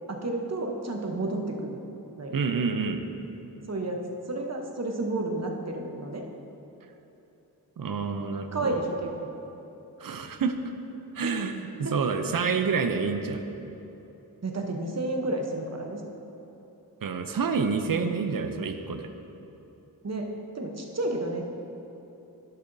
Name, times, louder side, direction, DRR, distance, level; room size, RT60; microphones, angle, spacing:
voice 1, 0.1-1.8 2.2-2.4 3.7-6.2 8.5-9.3 11.2-11.3 11.8-11.9 14.4-16.0 20.0-20.3 20.5-21.4, right 2 dB, 40° right, 2 dB, 0.9 m, -31 dB
voice 2, 2.3-3.0 7.8-8.8 10.0-10.6 11.1-13.4 17.0-19.1, right 5 dB, 60° right, 7 dB, 0.6 m, -28 dB
11.5 x 6.8 x 2.6 m, 3.0 s
wide cardioid pair, 95°, 38 cm